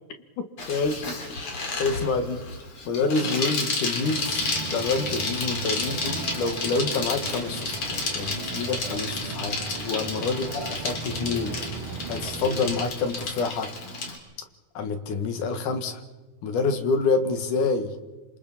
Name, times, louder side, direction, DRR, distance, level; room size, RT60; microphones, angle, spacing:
Bicycle, 0.6-14.2, left 3 dB, 45° left, 3.8 m, -32 dB
voice 1, 0.7-1.0 1.8-2.6 2.9-4.4 4.7-11.6 12.1-13.7 14.7-16.0 16.4-17.9, left 4 dB, 85° left, 7 dB, 3.2 m, -27 dB
sound 1, 4.0-12.9, right 5 dB, 85° right, 3.5 m, -37 dB
29.0 x 27.0 x 4.2 m, 1.2 s
omnidirectional pair, 3.6 m